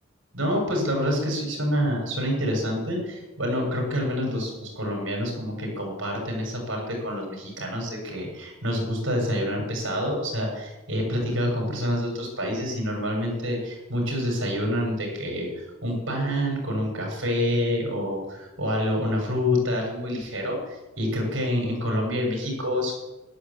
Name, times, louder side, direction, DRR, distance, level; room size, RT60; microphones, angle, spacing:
voice 1, 0.3-22.9, equal, 65° right, 1 dB, 7.1 m, -27 dB
13.0 x 11.0 x 8.7 m, 1.1 s
head